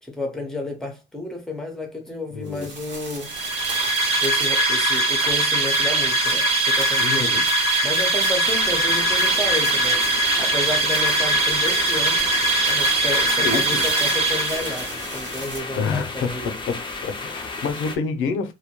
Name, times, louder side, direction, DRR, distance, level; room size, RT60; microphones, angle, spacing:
voice 1, 0.0-3.3 4.2-7.3 7.8-16.5, left 2 dB, ahead, 0.9 m, -31 dB
voice 2, 2.3-2.7 7.0-7.5 13.4-13.9 15.8-16.8 17.0-18.5, left 5 dB, 85° left, 0.5 m, -27 dB
sound 1, 2.5-15.6, right 3 dB, 65° right, 1.1 m, -36 dB
sound 2, 3.2-15.1, right 2 dB, 30° right, 0.8 m, -21 dB
sound 3, 8.4-18.0, left 3 dB, 25° left, 0.5 m, -34 dB
2.2 x 2.1 x 2.9 m
cardioid pair, 90°, 20 cm